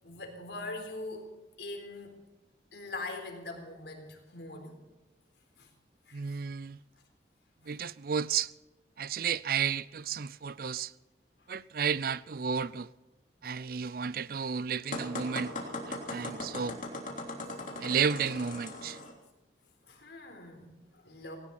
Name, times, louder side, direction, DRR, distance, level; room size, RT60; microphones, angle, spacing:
voice 1, 0.0-2.2 2.7-4.8 5.6-5.7 6.1-6.4 7.6-7.7 11.4-11.5 13.7-13.8 19.9-21.4, left 2 dB, 75° left, 4.0 m, -42 dB
voice 2, 6.1-6.8 7.7-8.5 9.0-10.9 11.5-12.9 13.4-15.5 15.9-16.8 17.8-19.0, right 6 dB, 55° right, 0.4 m, -32 dB
sound 1, 14.9-19.1, left 2 dB, 45° left, 3.3 m, -39 dB
18.0 x 18.0 x 4.3 m
head